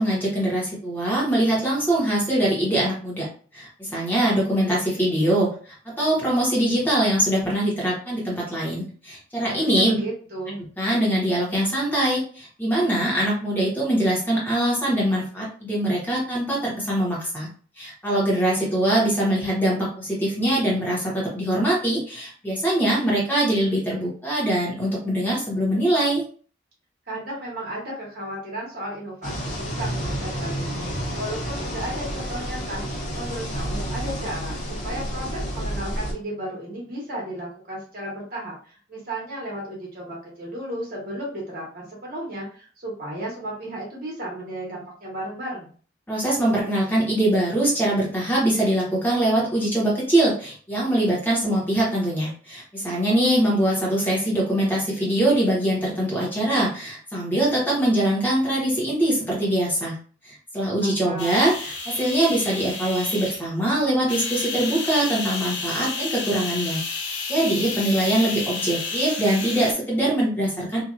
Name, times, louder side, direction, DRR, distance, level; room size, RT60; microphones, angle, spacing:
voice 1, 0.0-3.3 3.5-5.5 6.0-10.0 10.8-17.5 17.8-26.2 46.1-60.0 60.2-66.8 67.3-70.8, right 1 dB, 10° left, -5 dB, 1.2 m, -23 dB
voice 2, 9.5-10.6 27.1-30.9 31.1-32.8 33.1-45.7 60.8-61.3, right 1 dB, 55° right, -4 dB, 1.2 m, -34 dB
sound 1, 29.2-36.1, equal, 45° left, 0.9 m, -30 dB
sound 2, 61.2-63.5 64.1-69.7, left 4 dB, 70° left, 0.6 m, -31 dB
2.9 x 2.5 x 2.5 m, 0.43 s
head